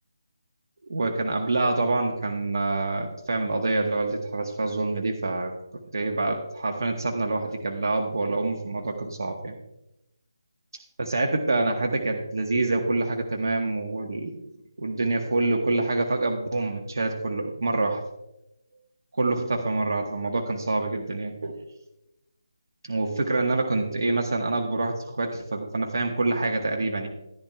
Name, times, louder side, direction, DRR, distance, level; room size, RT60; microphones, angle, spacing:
voice 1, 0.9-5.5 5.9-9.6 11.0-14.4 14.8-18.0 19.1-21.6 22.8-27.1, right 2 dB, 65° right, 2 dB, 1.3 m, -26 dB
14.5 x 10.5 x 2.3 m, 0.91 s
figure-of-eight pair, 165°, 2 cm